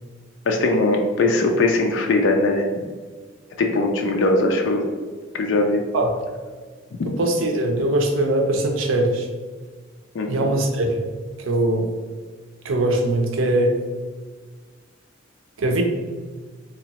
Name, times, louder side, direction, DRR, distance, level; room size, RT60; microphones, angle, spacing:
voice 1, 0.5-2.7 3.6-4.9 5.3-5.8 7.0-7.2 10.1-10.5, left 2 dB, 65° left, 2 dB, 0.4 m, -20 dB
voice 2, 7.1-9.3 10.3-11.0 11.5-11.9 12.6-13.8 15.6-15.8, right 1 dB, 80° right, 3 dB, 0.6 m, -21 dB
3.6 x 3.0 x 2.9 m, 1.5 s
head